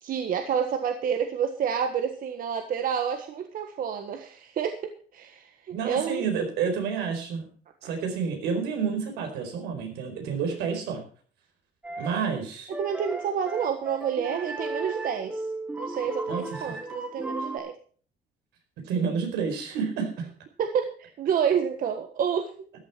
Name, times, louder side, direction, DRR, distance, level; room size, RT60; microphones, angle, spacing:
voice 1, 0.0-6.2 7.8-7.9 12.8-15.4 15.8-17.7 20.6-22.5, right 7 dB, 55° right, 6 dB, 1.5 m, -29 dB
voice 2, 5.7-7.5 7.8-11.0 12.0-12.7 16.3-16.6 18.8-20.3, right 6 dB, 85° right, 4 dB, 4.8 m, -29 dB
sound 1, 11.8-12.3 12.7-17.6, right 2 dB, 10° right, 2.7 m, -35 dB
14.0 x 11.0 x 4.5 m, 0.43 s
cardioid pair, 110°, 17 cm